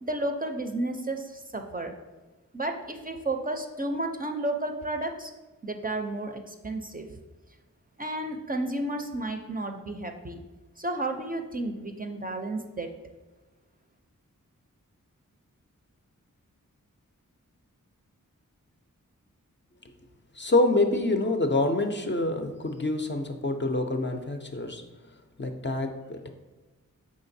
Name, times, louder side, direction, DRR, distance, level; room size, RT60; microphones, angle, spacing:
voice 1, 0.0-1.9 2.5-5.3 5.6-7.1 8.0-10.4 10.8-12.9, right 2 dB, 25° right, 4 dB, 0.5 m, -32 dB
voice 2, 20.4-24.8 25.4-26.3, left 2 dB, 35° left, 5 dB, 0.5 m, -26 dB
5.0 x 3.8 x 2.6 m, 1.2 s
cardioid pair, 40°, 34 cm